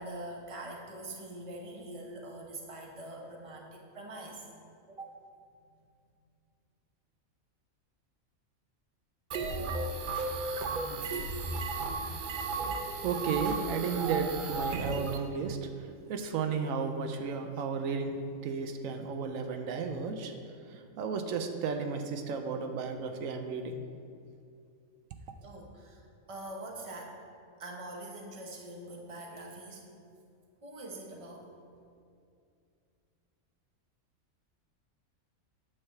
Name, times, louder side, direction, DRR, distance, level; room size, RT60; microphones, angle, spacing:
voice 1, 0.0-4.5 4.9-5.1 25.4-27.2 27.6-29.9 30.6-31.5, right 1 dB, 30° right, 0 dB, 0.9 m, -44 dB
sound 1, 9.3-15.2, right 3 dB, 55° right, 0.6 m, -34 dB
voice 2, 12.7-20.3 20.7-23.8, right 5 dB, 85° right, 6 dB, 1.0 m, -34 dB
8.8 x 3.4 x 6.7 m, 2.5 s
omnidirectional pair, 1.4 m